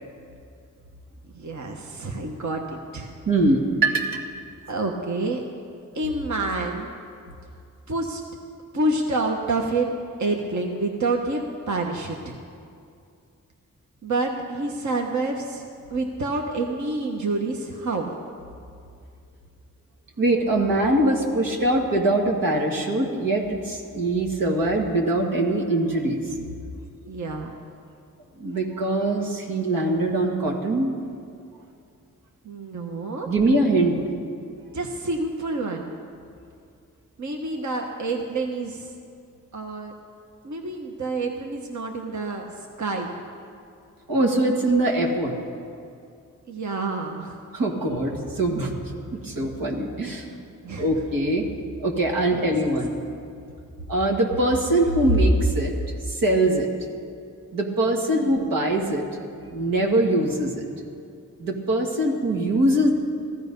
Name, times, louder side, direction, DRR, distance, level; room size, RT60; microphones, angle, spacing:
voice 1, 1.3-2.6 2.9-3.1 4.7-5.4 5.9-6.9 7.9-8.2 8.7-9.9 10.2-11.4 11.7-12.4 14.0-15.6 15.9-18.1 27.1-27.5 32.4-33.3 34.7-35.9 37.2-38.9 39.5-39.9 40.4-42.4 42.8-43.1 46.5-47.4 50.6-50.8 52.3-52.4 58.1-58.5, right 2 dB, 60° right, 1 dB, 1.3 m, -28 dB
voice 2, 3.3-4.1 20.2-26.3 28.4-30.9 33.3-34.0 44.1-45.3 47.5-48.7 49.2-50.3 50.8-51.4 51.8-52.9 53.9-55.7 56.1-56.7 57.5-59.1 59.5-60.7 61.4-62.9, right 1 dB, 90° right, 0 dB, 2.0 m, -22 dB
15.0 x 13.0 x 5.4 m, 2.4 s
cardioid pair, 60°, 33 cm